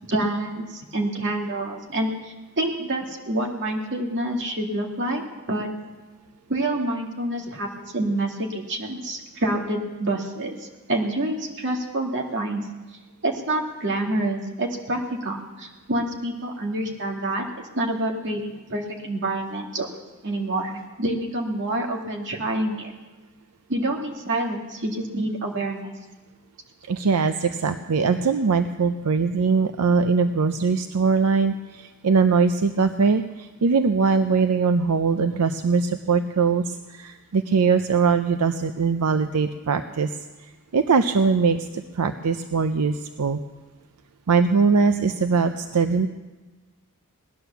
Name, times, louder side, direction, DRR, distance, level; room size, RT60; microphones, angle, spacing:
voice 1, 0.0-5.7 6.5-7.7 7.9-12.6 13.2-17.4 17.7-19.9 20.2-22.9 23.7-25.9, right 1 dB, 55° right, 1 dB, 2.3 m, -27 dB
voice 2, 26.9-40.2 40.7-43.4 44.3-46.1, right 5 dB, 85° right, 9 dB, 0.6 m, -21 dB
18.5 x 11.0 x 6.9 m, 1.2 s
head